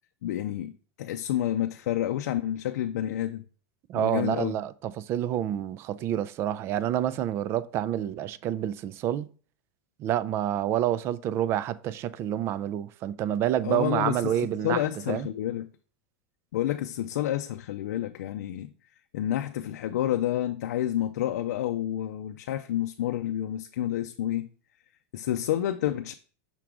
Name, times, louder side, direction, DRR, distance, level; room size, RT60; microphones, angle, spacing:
voice 1, 0.2-0.7 1.0-3.4 3.9-4.5 13.6-15.7 16.5-18.7 19.1-24.5 25.1-26.1, left 12 dB, 85° left, 0.5 m, -29 dB
voice 2, 3.9-9.3 10.0-15.3, right 11 dB, 30° right, 0.3 m, -28 dB
5.9 x 3.7 x 4.6 m
supercardioid pair, 160°, 9 cm